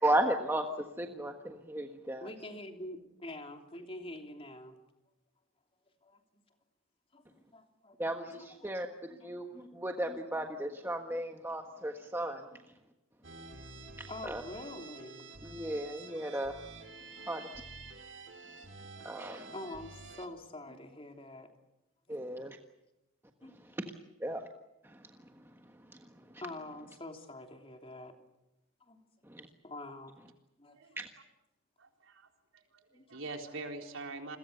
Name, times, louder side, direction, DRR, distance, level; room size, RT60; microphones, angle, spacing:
voice 1, 0.0-2.3 8.0-12.4 14.0-14.4 15.4-16.5 17.3-17.5 19.0-19.5 22.1-22.6 23.8-23.9 24.2-24.4 24.8-25.0 25.9-26.0 26.3-26.4 29.3-29.4 31.0-31.1, right 1 dB, 10° right, 4 dB, 1.4 m, -35 dB
voice 2, 2.2-4.8 6.0-6.2 7.1-8.0 8.3-8.5 9.1-9.3 9.6-9.8 10.3-10.5 14.1-15.3 17.2-17.5 19.5-21.5 22.1-22.5 23.4-23.6 26.4-28.2 28.8-29.0 29.6-30.2 30.6-30.8 32.9-33.1 33.5-33.6, left 1 dB, 25° left, 4 dB, 3.1 m, -46 dB
sound 1, 13.2-20.3, right 3 dB, 60° right, 3.1 m, -49 dB
voice 3, 31.8-32.3 33.1-34.4, right 3 dB, 75° right, 3 dB, 3.9 m, -43 dB
29.5 x 22.0 x 6.8 m, 0.94 s
head